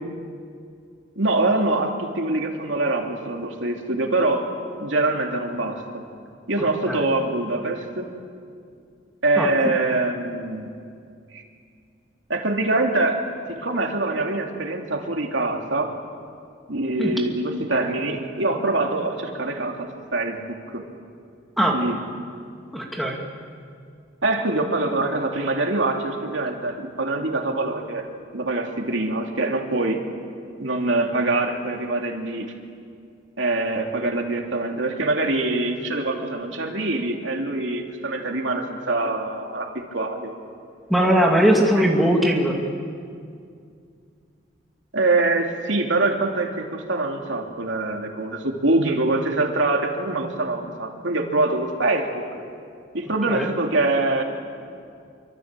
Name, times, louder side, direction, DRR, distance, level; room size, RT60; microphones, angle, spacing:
voice 1, 1.2-4.5 4.8-6.0 6.5-8.1 9.2-10.7 11.3-11.4 12.3-13.2 13.5-15.9 16.7-20.8 21.7-22.0 24.2-28.0 28.3-30.0 30.6-32.5 33.4-40.3 41.7-41.9 44.9-52.2 52.9-54.2, right 2 dB, 80° right, 2 dB, 2.7 m, -24 dB
voice 2, 9.4-9.7 17.0-17.1 21.6-21.8 22.7-23.2 40.9-42.6 53.3-53.5, equal, ahead, -1 dB, 2.5 m, -20 dB
26.0 x 24.5 x 7.5 m, 2.3 s
head